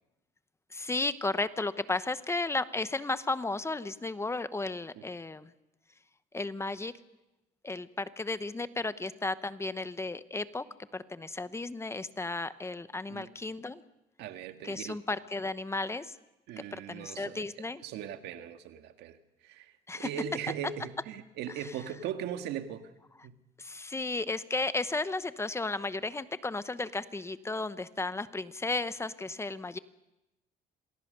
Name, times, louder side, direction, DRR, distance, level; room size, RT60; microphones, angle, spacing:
voice 1, 0.7-5.5 6.3-6.9 7.6-10.6 10.9-13.8 14.6-16.1 16.9-17.8 19.9-20.1 23.6-29.8, left 3 dB, 15° left, 0.9 m, -34 dB
voice 2, 14.2-15.0 16.5-17.5 17.8-19.2 19.4-22.9 23.2-23.4, right 9 dB, 85° right, 1.7 m, -39 dB
27.5 x 20.0 x 6.7 m
cardioid pair, 110°, 17 cm